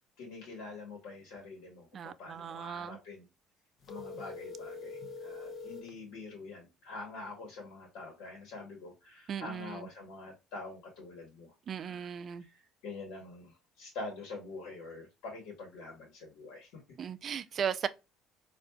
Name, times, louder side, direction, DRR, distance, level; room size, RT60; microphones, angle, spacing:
voice 1, 0.2-3.3 3.9-16.8, left 3 dB, 75° left, 1.2 m, -46 dB
voice 2, 1.9-3.0 9.3-9.9 11.7-12.4 17.0-17.9, right 8 dB, 50° right, 0.3 m, -37 dB
sound 1, 3.8-5.9, left 4 dB, 55° left, 0.7 m, -43 dB
4.3 x 2.5 x 2.2 m
supercardioid pair, 85°, 0 cm